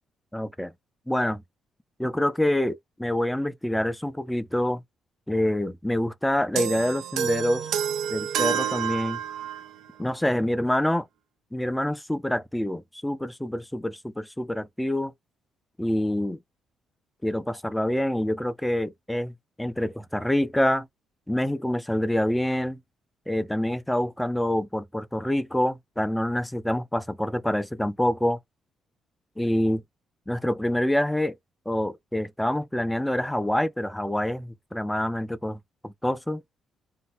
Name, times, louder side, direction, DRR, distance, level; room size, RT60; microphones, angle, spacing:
voice 1, 0.3-0.7 1.1-1.4 2.0-4.8 5.3-7.6 8.1-9.2 10.0-11.1 11.5-15.1 15.8-16.4 17.2-19.3 19.6-20.9 21.3-22.8 23.3-28.4 29.4-29.8 30.3-31.3 31.7-36.4, left 1 dB, 5° left, 0.8 m, -26 dB
sound 1, 6.6-9.8, right 9 dB, 85° right, 0.8 m, -28 dB
4.5 x 2.2 x 4.4 m
cardioid pair, 90°, 0 cm